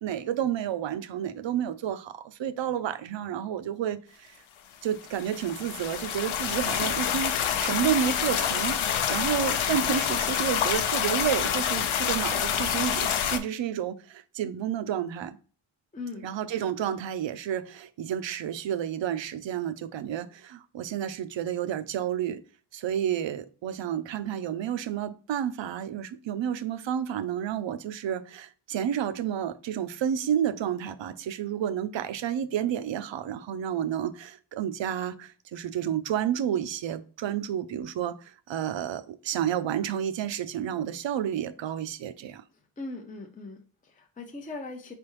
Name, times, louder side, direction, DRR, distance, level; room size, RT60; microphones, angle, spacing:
voice 1, 0.0-4.4 4.8-7.3 7.6-8.8 9.1-15.4 16.2-22.4 22.7-42.4, right 9 dB, 70° right, 0.5 m, -30 dB
sound 1, 5.0-13.4, left 8 dB, 80° left, 0.6 m, -27 dB
voice 2, 15.9-16.3 42.8-44.9, left 3 dB, 20° left, 0.5 m, -39 dB
4.5 x 3.4 x 2.9 m
wide cardioid pair, 120°, 47 cm